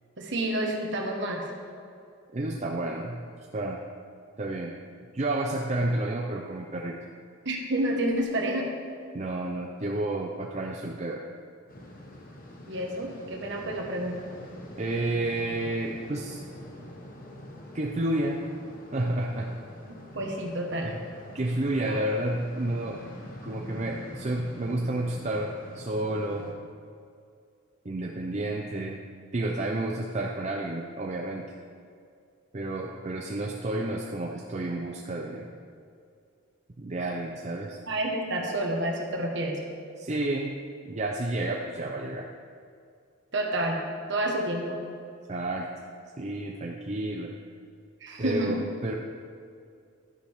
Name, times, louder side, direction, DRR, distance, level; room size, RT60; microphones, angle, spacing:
voice 1, 0.2-1.5 7.4-8.7 12.7-14.2 20.1-20.9 21.9-22.0 37.9-39.6 43.3-43.8 44.1-44.8 48.0-48.5, right 1 dB, 55° right, 1 dB, 1.5 m, -29 dB
voice 2, 2.3-3.2 3.5-3.8 4.4-4.7 5.1-7.0 9.1-11.2 14.8-16.4 17.7-18.4 18.9-19.6 20.8-21.0 21.3-23.0 23.4-26.5 27.8-29.0 29.3-31.5 32.5-35.5 36.8-37.8 40.0-40.5 40.8-42.3 45.3-45.7 46.2-47.3 48.2-48.9, right 1 dB, 30° right, 0 dB, 0.5 m, -30 dB
sound 1, 11.7-26.5, left 1 dB, 40° left, 1.3 m, -45 dB
11.5 x 10.0 x 3.6 m, 2.4 s
head